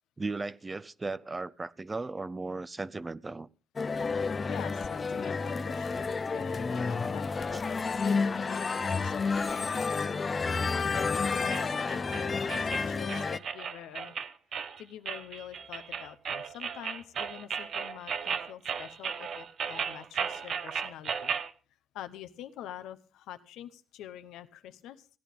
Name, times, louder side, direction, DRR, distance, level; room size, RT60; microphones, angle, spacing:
voice 1, 0.2-3.5, right 3 dB, 25° right, 0.5 m, -36 dB
sound 1, 3.8-13.4, left 4 dB, 35° left, 0.5 m, -30 dB
voice 2, 4.5-10.3 10.9-14.1 14.8-21.3 21.9-25.1, left 11 dB, 90° left, 0.8 m, -46 dB
sound 2, 11.5-21.5, right 7 dB, 60° right, 0.8 m, -35 dB
16.0 x 10.5 x 3.6 m
cardioid pair, 90°, 0 cm